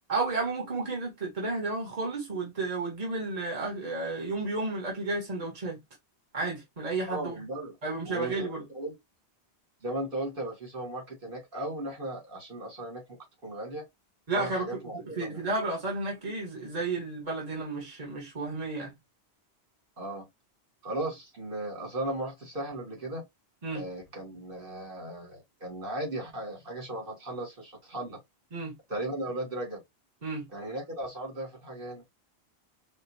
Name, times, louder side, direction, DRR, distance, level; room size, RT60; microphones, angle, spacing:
voice 1, 0.1-5.8 6.3-7.4 7.8-8.6 14.3-18.9 23.6-23.9 28.5-28.7 30.2-30.5, right 3 dB, 40° right, 1.3 m, -32 dB
voice 2, 7.1-7.8 8.1-8.9 9.8-13.9 14.3-15.5 20.0-20.3 20.8-23.2 23.7-28.2 28.9-29.8 30.5-32.0, right 1 dB, 55° right, 1.9 m, -36 dB
5.1 x 2.0 x 2.6 m
omnidirectional pair, 1.1 m